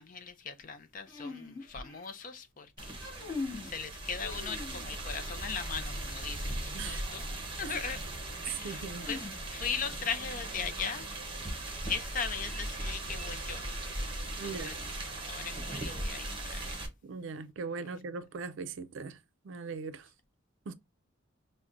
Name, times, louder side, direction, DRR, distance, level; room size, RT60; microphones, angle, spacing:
voice 1, 0.0-3.0 3.4-7.2 7.6-8.0 8.4-11.1 11.9-13.6 14.2-14.8 15.3-16.8 17.8-17.9, left 6 dB, 40° left, 0.5 m, -39 dB
sound 1, 1.1-2.3 2.8-3.7 4.2-5.1 7.1-7.2 9.0-9.8, left 3 dB, 15° left, 1.5 m, -42 dB
sound 2, 2.8-16.9, right 1 dB, 25° right, 0.8 m, -38 dB
voice 2, 8.6-9.1 14.4-14.8 17.0-19.2 19.5-20.0 20.7-20.8, right 4 dB, 70° right, 0.4 m, -39 dB
5.7 x 2.1 x 2.4 m
head